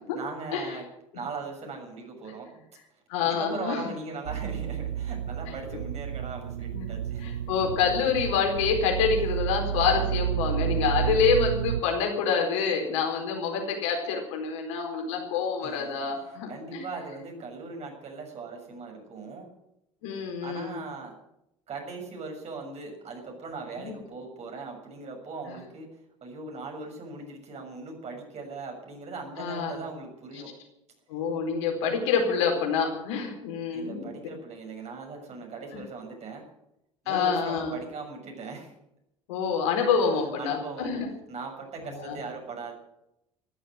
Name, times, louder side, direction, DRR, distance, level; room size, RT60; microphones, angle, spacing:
voice 1, 0.1-0.9 1.1-2.7 3.2-7.5 15.6-16.1 16.5-19.5 20.4-21.1 21.7-25.9 26.2-30.5 33.7-36.4 37.0-38.7 40.4-40.9 41.3-42.7, right 4 dB, 40° right, 2 dB, 6.8 m, -39 dB
voice 2, 3.1-3.9 5.7-5.8 6.7-6.9 7.2-16.8 20.0-20.7 23.8-23.9 25.5-25.6 29.4-29.8 31.1-34.1 35.7-35.8 37.1-37.7 39.3-41.1 41.9-42.2, left 6 dB, 70° left, 2 dB, 4.5 m, -27 dB
sound 1, 4.3-11.8, right 10 dB, 75° right, 0.8 m, -30 dB
15.0 x 12.5 x 7.7 m, 0.83 s
figure-of-eight pair, 65°, 16 cm